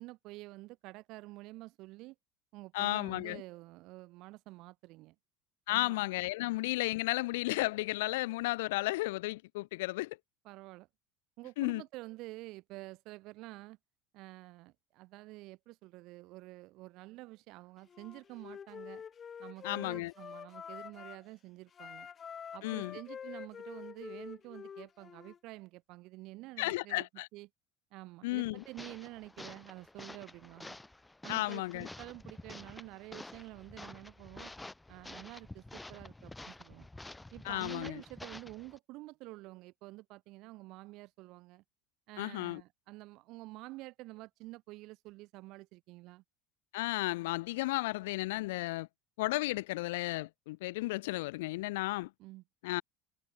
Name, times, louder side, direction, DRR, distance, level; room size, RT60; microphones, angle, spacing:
voice 1, 0.0-2.1 2.5-5.1 5.7-6.0 6.4-6.6 10.4-10.9 11.4-13.8 14.1-19.0 19.4-22.1 22.5-27.1 27.3-27.5 27.9-30.8 31.2-34.5 34.9-36.9 37.3-41.6 42.1-46.2 52.2-52.4, right 20 dB, 60° right, 4.9 m, -49 dB
voice 2, 2.7-3.4 5.7-10.2 11.6-11.8 19.6-20.1 22.6-23.0 26.6-27.3 28.2-28.6 31.3-31.9 37.4-38.0 42.2-42.6 46.7-48.9 49.2-52.1 52.6-52.8, left 20 dB, 75° left, 0.6 m, -33 dB
Wind instrument woodwind instrument, 17.9-21.3 21.7-25.4, left 7 dB, 35° left, 3.7 m, -47 dB
sound 1, 28.6-38.8, left 2 dB, 10° left, 1.5 m, -49 dB
hypercardioid pair, 80°, 0 cm